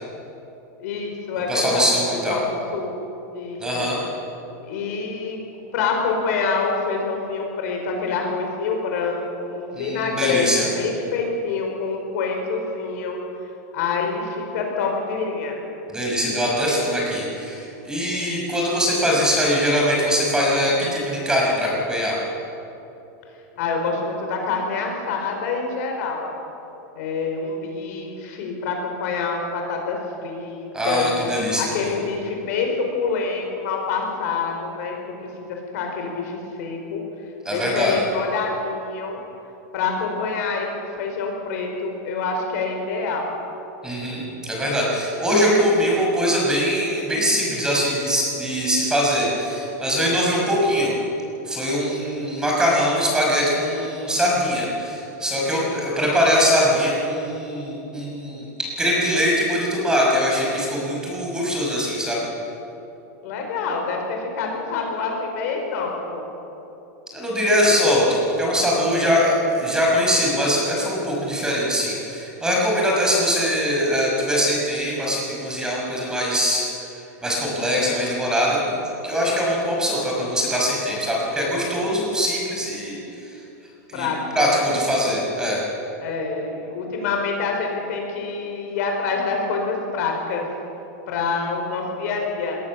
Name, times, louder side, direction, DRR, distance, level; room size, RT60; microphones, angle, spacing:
voice 1, 0.8-1.9 2.3-3.0 3.3-3.9 4.6-5.4 5.7-10.5 10.8-13.2 13.7-15.6 23.6-26.3 26.9-31.1 31.6-37.0 37.5-39.2 39.7-43.3 63.2-66.2 68.8-69.3 83.9-84.7 86.0-90.4 91.1-92.6, left 4 dB, 60° left, 2 dB, 5.0 m, -26 dB
voice 2, 1.5-2.4 3.6-4.0 9.8-10.7 15.9-22.1 30.7-31.9 37.4-37.9 43.8-51.0 51.4-58.5 58.8-62.2 67.1-76.9 77.2-78.8 79.0-83.0 83.3-83.4 83.9-84.1 84.3-85.6, equal, 5° right, -3 dB, 5.8 m, -22 dB
20.0 x 19.5 x 7.3 m, 2.9 s
supercardioid pair, 150°, 10 cm